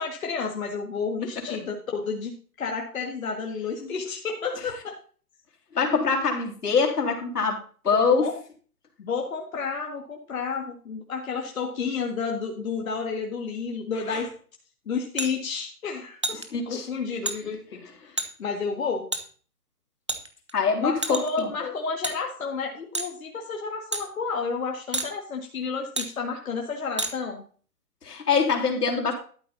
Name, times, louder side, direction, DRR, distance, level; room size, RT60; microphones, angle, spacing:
voice 1, 0.0-5.0 7.9-8.3 9.0-14.3 14.9-19.1 20.8-27.4, left 5 dB, 60° left, 2 dB, 2.0 m, -31 dB
voice 2, 5.7-8.3 14.1-14.2 16.5-16.9 20.5-21.5 28.0-29.1, left 5 dB, 75° left, 2 dB, 3.6 m, -24 dB
sound 1, 15.2-15.3 16.2-16.5 17.3-17.4 18.2-18.3 19.1-19.2 20.1-20.5 21.0-21.4 22.0-22.2 22.9-23.1 23.9-24.0 24.9-25.1 26.0-26.1 27.0-27.1, right 2 dB, 20° right, 0.6 m, -29 dB
12.5 x 7.9 x 4.1 m, 0.42 s
hypercardioid pair, 165°, 46 cm